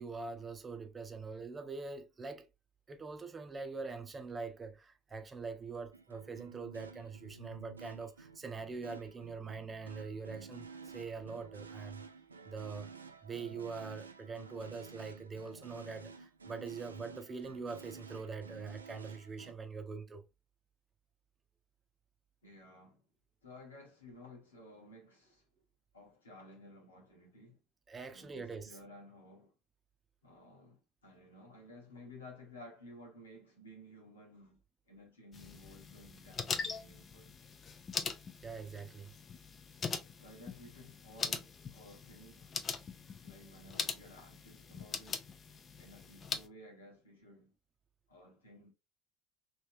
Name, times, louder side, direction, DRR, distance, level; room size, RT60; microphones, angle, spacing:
voice 1, 0.0-2.5 2.9-12.0 12.4-12.9 13.2-20.2 27.9-28.8 38.4-39.1, right 4 dB, 30° right, 0.8 m, -43 dB
sound 1, 5.9-19.5, right 5 dB, 90° right, 0.4 m, -52 dB
voice 2, 22.4-23.1 23.4-25.5 25.9-27.6 28.1-29.5 30.2-34.6 34.9-37.4 40.2-42.6 43.2-45.3 45.8-47.5 48.1-48.7, left 1 dB, 85° left, 1.4 m, -55 dB
sound 2, 35.3-46.5, left 5 dB, 35° left, 0.6 m, -42 dB
3.4 x 3.0 x 2.7 m
hypercardioid pair, 65°, 0 cm